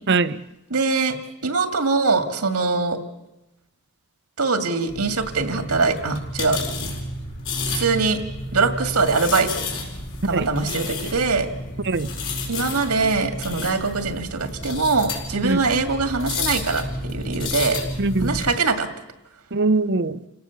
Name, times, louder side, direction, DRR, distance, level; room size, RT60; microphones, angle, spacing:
voice 1, 0.1-0.4 10.3-10.5 11.8-12.1 15.4-15.6 18.0-18.4 19.5-20.2, right 3 dB, 50° right, 0.7 m, -22 dB
voice 2, 0.7-1.2 1.4-3.0 4.4-6.6 7.7-8.2 8.5-9.7 10.3-11.5 12.5-17.8 18.2-18.9, right 4 dB, 85° right, 2.1 m, -22 dB
sound 1, 4.9-18.5, left 2 dB, 60° left, 4.8 m, -31 dB
28.5 x 18.0 x 7.2 m
head